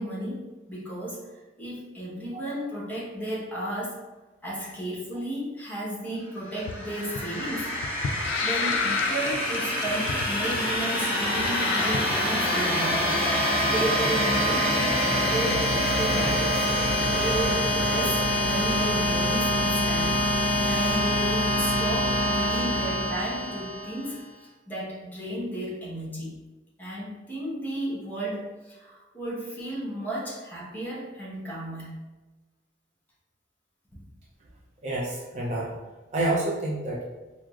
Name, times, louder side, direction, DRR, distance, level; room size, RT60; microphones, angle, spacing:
voice 1, 0.0-4.0 4.4-7.7 8.4-13.1 13.7-15.7 16.0-16.6 17.0-20.2 20.6-26.4 26.8-32.0 33.9-34.0, right 1 dB, 10° left, -6 dB, 1.0 m, -33 dB
sound 1, 6.5-24.1, equal, 10° right, 1.4 m, -25 dB
sound 2, 6.6-12.9, left 5 dB, 80° left, 0.3 m, -32 dB
voice 2, 20.6-21.0 22.5-22.6 34.8-35.7 36.1-37.0, right 2 dB, 40° right, -3 dB, 0.5 m, -29 dB
4.6 x 2.0 x 2.3 m, 1.2 s
head